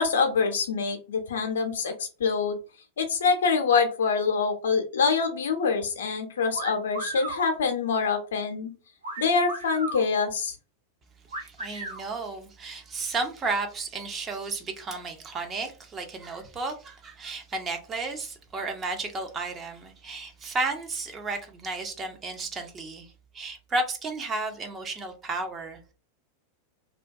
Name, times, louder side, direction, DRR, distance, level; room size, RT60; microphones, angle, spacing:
voice 1, 0.0-2.6 3.0-8.7 9.2-10.6, left 5 dB, 65° left, 0.5 m, -25 dB
sound 1, 6.5-7.4 9.0-10.0 11.3-12.0, right 2 dB, 75° right, 0.7 m, -35 dB
voice 2, 11.4-25.9, right 3 dB, 25° right, 0.5 m, -33 dB
2.2 x 2.2 x 2.5 m
figure-of-eight pair, 90°, 0 cm